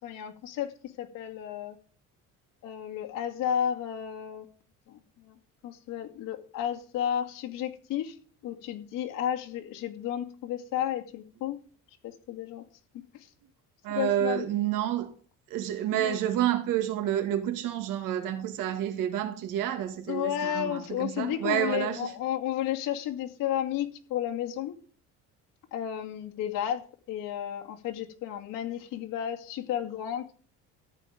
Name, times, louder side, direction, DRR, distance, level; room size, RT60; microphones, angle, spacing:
voice 1, 0.0-1.8 2.6-4.5 4.9-5.4 5.6-8.2 8.4-11.6 12.0-12.6 13.1-13.3 13.9-14.4 16.0-16.2 20.1-24.7 25.7-26.8 27.1-30.3, left 10 dB, 85° left, 2.4 m, -32 dB
voice 2, 13.8-15.1 15.5-22.1, right 11 dB, 80° right, 2.1 m, -29 dB
14.0 x 9.1 x 5.2 m
cardioid pair, 135°, 32 cm